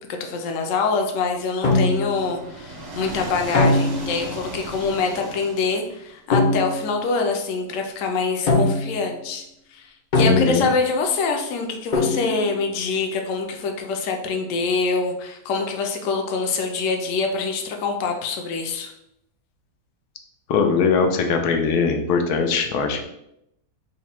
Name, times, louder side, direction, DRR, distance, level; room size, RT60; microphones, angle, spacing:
voice 1, 0.2-9.4 9.7-9.9 10.1-18.9, left 4 dB, 70° left, 3 dB, 0.9 m, -25 dB
sound 1, 1.6-2.3 3.5-4.2 6.3-6.9 8.5-9.1 10.1-10.9 11.9-12.5, left 2 dB, 50° left, 0.5 m, -21 dB
sound 2, 1.7-6.1, right 2 dB, 35° right, 0.7 m, -36 dB
voice 2, 10.2-10.6 20.5-23.0, left 5 dB, 85° left, 4 dB, 1.1 m, -21 dB
3.9 x 2.2 x 4.2 m, 0.79 s
omnidirectional pair, 1.6 m